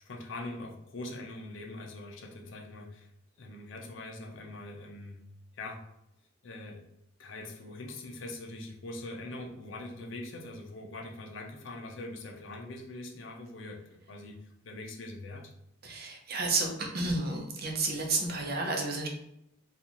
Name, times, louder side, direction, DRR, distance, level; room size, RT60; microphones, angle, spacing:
voice 1, 0.0-3.1 3.4-5.2 5.5-5.8 6.4-6.8 7.2-13.8 14.1-15.5, left 2 dB, 65° left, 2 dB, 0.6 m, -42 dB
voice 2, 15.8-19.1, right 3 dB, 50° right, 2 dB, 0.7 m, -31 dB
4.1 x 2.5 x 2.9 m, 0.80 s
head